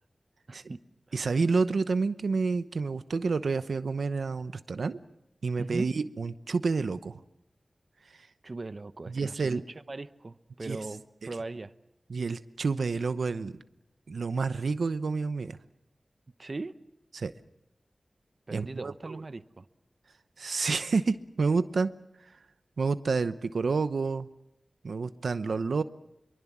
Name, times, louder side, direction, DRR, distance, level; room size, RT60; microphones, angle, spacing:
voice 1, 0.5-0.8 5.6-5.9 8.4-9.6 9.9-11.7 16.4-16.8 18.5-19.7, right 3 dB, 45° right, 11 dB, 0.9 m, -39 dB
voice 2, 1.1-5.0 5.4-7.2 9.1-9.6 10.6-10.8 12.1-13.6 14.1-15.6 17.1-17.3 18.5-19.2 20.4-21.9 22.8-24.3 24.8-25.8, right 4 dB, 90° right, 11 dB, 0.9 m, -29 dB
24.5 x 23.5 x 7.4 m, 0.85 s
wide cardioid pair, 95°, 0 cm